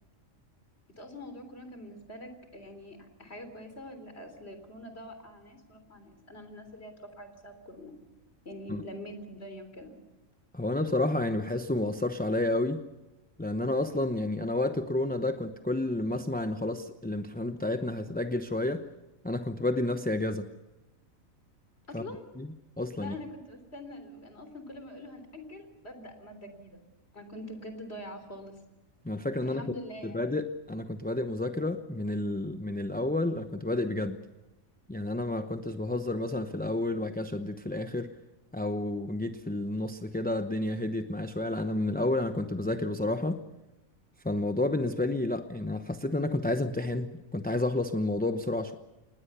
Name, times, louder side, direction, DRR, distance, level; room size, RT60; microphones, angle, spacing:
voice 1, 1.0-8.0 8.4-9.9 21.9-22.2 23.0-26.8 27.1-28.6 29.4-30.2, left 1 dB, 50° left, 8 dB, 3.9 m, -44 dB
voice 2, 10.5-12.8 13.4-18.9 19.2-20.5 21.9-22.0 22.4-23.1 29.0-29.6 30.0-34.2 34.9-38.1 38.5-43.4 44.2-48.7, left 2 dB, 10° left, 7 dB, 0.7 m, -30 dB
27.5 x 20.0 x 6.9 m, 1.1 s
omnidirectional pair, 1.4 m